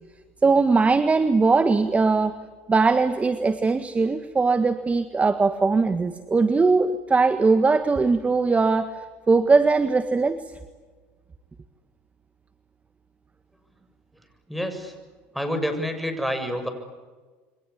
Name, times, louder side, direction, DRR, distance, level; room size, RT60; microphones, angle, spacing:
voice 1, 0.4-2.4 2.7-10.4, right 4 dB, 20° right, 10 dB, 1.6 m, -20 dB
voice 2, 14.5-14.9 15.3-16.7, equal, ahead, 6 dB, 7.2 m, -28 dB
29.0 x 24.5 x 8.5 m, 1.4 s
hypercardioid pair, 80°, 6 cm